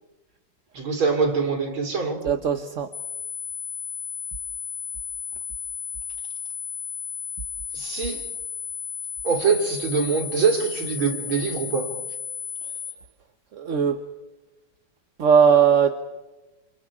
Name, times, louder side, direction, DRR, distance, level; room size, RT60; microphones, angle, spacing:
voice 1, 0.7-2.2 7.7-8.3 9.2-11.9, right 5 dB, 75° right, 3 dB, 4.1 m, -24 dB
voice 2, 2.2-2.9 13.5-14.0 15.2-16.0, right 7 dB, 45° right, 8 dB, 1.2 m, -19 dB
sound 1, 2.9-12.9, left 7 dB, 30° left, 4.5 m, -34 dB
29.0 x 28.5 x 4.9 m, 1.1 s
omnidirectional pair, 2.2 m